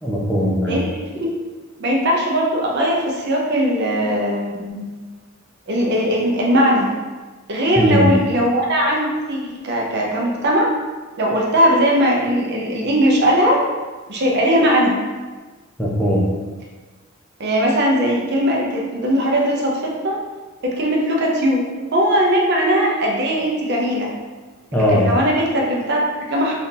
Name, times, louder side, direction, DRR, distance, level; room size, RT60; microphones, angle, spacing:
voice 1, 0.0-0.8 7.8-8.2 15.8-16.3 24.7-25.2, equal, 5° left, -5 dB, 0.5 m, -18 dB
voice 2, 1.8-4.9 5.7-6.9 7.5-10.7 11.2-13.6 14.1-15.0 17.4-20.2 20.6-21.6 21.9-24.1 24.9-26.5, equal, 55° right, -2 dB, 0.6 m, -19 dB
2.7 x 2.5 x 3.7 m, 1.3 s
head